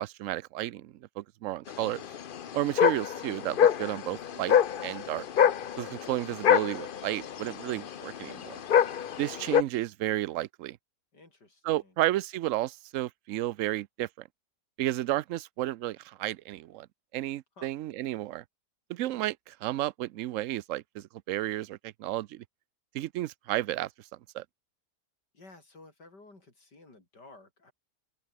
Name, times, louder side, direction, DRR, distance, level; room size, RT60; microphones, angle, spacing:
voice 1, 0.0-2.0 2.5-4.6 4.8-5.2 5.8-8.6 9.2-10.8 11.6-14.3 14.8-16.9 17.1-18.4 18.9-22.4 22.9-23.9 24.3-24.4, right 14 dB, 70° right, 0.8 m, -32 dB
sound 1, 1.7-9.6, left 8 dB, 60° left, 0.5 m, -26 dB
voice 2, 11.1-12.0 17.6-17.7 25.3-27.7, left 2 dB, 80° left, 6.3 m, -54 dB
omnidirectional pair, 1.8 m